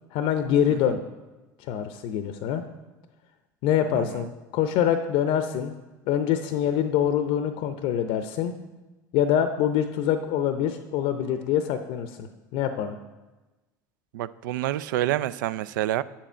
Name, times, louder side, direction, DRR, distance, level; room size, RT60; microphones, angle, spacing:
voice 1, 0.1-1.0 1.7-2.6 3.6-4.3 4.5-5.7 6.1-8.5 9.1-13.0, left 9 dB, 65° left, 8 dB, 0.6 m, -25 dB
voice 2, 4.0-4.3 14.1-16.0, right 14 dB, 80° right, 16 dB, 0.4 m, -28 dB
8.7 x 7.5 x 4.4 m, 1.1 s
hypercardioid pair, 80°, 10 cm